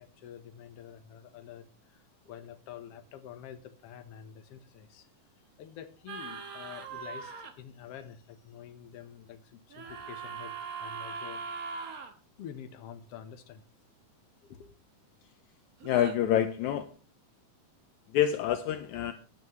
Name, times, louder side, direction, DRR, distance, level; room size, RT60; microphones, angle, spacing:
voice 1, 0.0-5.1 5.6-10.5 10.8-11.4 12.4-13.7 14.4-14.8, left 9 dB, 60° left, 8 dB, 1.9 m, -47 dB
sound 1, 6.1-7.5 9.7-12.1 15.8-16.2, right 5 dB, 60° right, 0.9 m, -40 dB
voice 2, 15.8-16.9 18.1-19.1, left 10 dB, 75° left, 10 dB, 1.9 m, -27 dB
16.5 x 10.5 x 3.2 m, 0.35 s
omnidirectional pair, 3.6 m